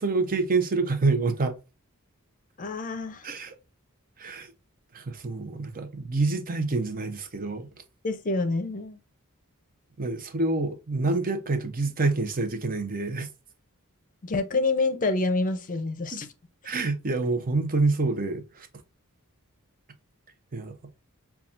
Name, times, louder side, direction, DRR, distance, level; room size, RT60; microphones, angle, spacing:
voice 1, 0.0-1.6 3.2-3.5 4.2-4.5 4.9-7.7 10.0-13.3 16.1-16.2 16.6-18.7 20.5-20.8, right 3 dB, 40° right, 0.7 m, -27 dB
voice 2, 2.6-3.3 8.0-9.0 14.2-16.3, left 3 dB, 40° left, 0.6 m, -27 dB
5.6 x 2.3 x 2.5 m
head